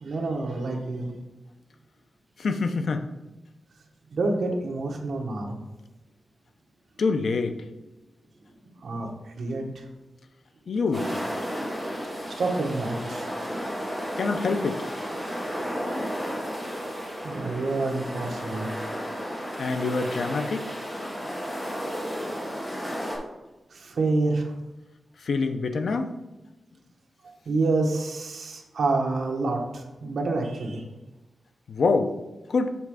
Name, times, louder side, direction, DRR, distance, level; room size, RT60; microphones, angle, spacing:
voice 1, 0.0-1.1 4.1-5.6 8.8-9.1 9.4-9.6 12.4-13.3 17.2-18.7 23.7-24.5 27.5-30.8, right 3 dB, 70° right, 2 dB, 1.0 m, -27 dB
voice 2, 2.4-3.1 7.0-7.6 10.7-11.3 14.2-14.8 19.6-20.6 25.3-26.1 31.7-32.1 32.5-32.7, left 4 dB, 70° left, 7 dB, 0.5 m, -25 dB
sound 1, 10.9-23.2, equal, 15° left, 1.7 m, -33 dB
7.0 x 3.5 x 4.8 m, 1.0 s
wide cardioid pair, 140°, 0 cm